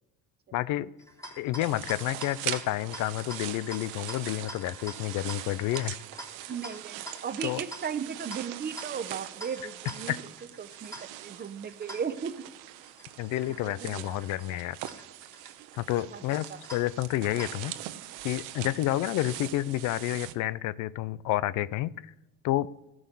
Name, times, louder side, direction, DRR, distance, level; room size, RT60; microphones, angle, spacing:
voice 1, 0.5-0.9 1.4-6.0 7.4-7.6 10.1-10.2 13.2-14.8 15.8-16.5 16.7-17.7 18.2-21.9 22.4-22.7, left 15 dB, 70° left, 19 dB, 0.6 m, -29 dB
sound 1, 1.0-17.9, equal, 10° left, 3.6 m, -47 dB
sound 2, 1.6-20.3, right 14 dB, 85° right, 0.9 m, -42 dB
voice 2, 6.5-10.2 10.6-10.9 11.2-12.3 13.5-14.2 14.5-14.6 16.0-16.6, right 7 dB, 30° right, 12 dB, 0.8 m, -36 dB
14.0 x 6.3 x 8.1 m, 0.97 s
cardioid pair, 105°, 31 cm